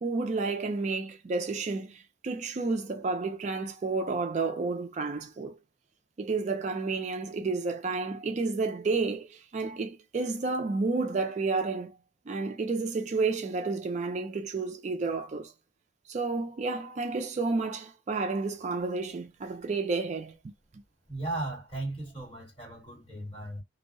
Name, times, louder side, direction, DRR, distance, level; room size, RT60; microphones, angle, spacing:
voice 1, 0.0-5.6 6.2-11.9 12.3-15.5 16.1-20.4, right 3 dB, 40° right, 0.3 m, -31 dB
voice 2, 21.1-23.6, right 2 dB, 30° left, 1.7 m, -36 dB
2.6 x 2.1 x 2.5 m
head